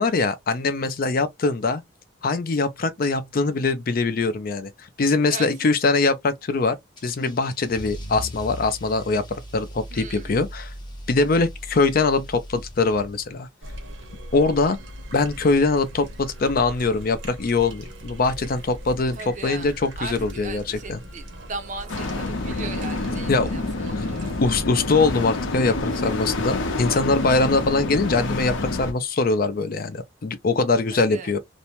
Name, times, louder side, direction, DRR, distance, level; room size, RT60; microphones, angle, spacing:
voice 1, 0.0-1.8 2.2-4.7 5.0-6.8 7.0-9.2 9.5-10.7 11.1-13.5 14.3-14.8 15.1-19.2 19.4-21.0 23.3-23.5 24.0-24.1 24.4-31.4, left 3 dB, 50° left, 0.5 m, -22 dB
voice 2, 5.3-5.7 9.9-10.4 19.1-24.4 25.9-26.4 30.9-31.3, right 4 dB, 40° right, 0.5 m, -38 dB
Car / Engine starting / Accelerating revving vroom, 7.0-13.5, left 1 dB, 25° left, 0.8 m, -38 dB
sound 1, 13.6-24.6, equal, 80° right, 0.9 m, -39 dB
sound 2, 21.9-28.9, left 2 dB, 90° left, 0.6 m, -28 dB
2.5 x 2.1 x 2.9 m
head